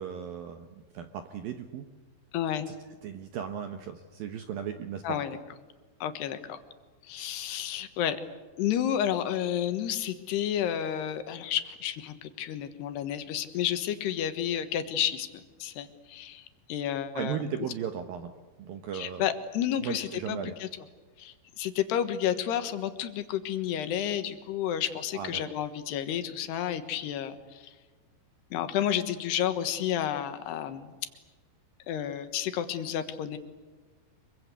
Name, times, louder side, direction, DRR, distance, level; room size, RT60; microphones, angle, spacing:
voice 1, 0.0-1.9 2.7-2.8 3.0-5.2 17.1-18.3 18.6-19.2 19.8-20.5 25.1-25.6, right 8 dB, 70° right, 7 dB, 2.3 m, -36 dB
voice 2, 2.3-2.7 5.0-5.4 6.0-6.6 7.1-8.2 8.6-15.3 15.6-16.4 16.7-17.4 18.9-20.7 21.2-27.6 28.5-30.9 31.9-33.4, left 10 dB, 70° left, 9 dB, 3.2 m, -31 dB
26.0 x 23.5 x 8.3 m, 1.3 s
omnidirectional pair, 5.5 m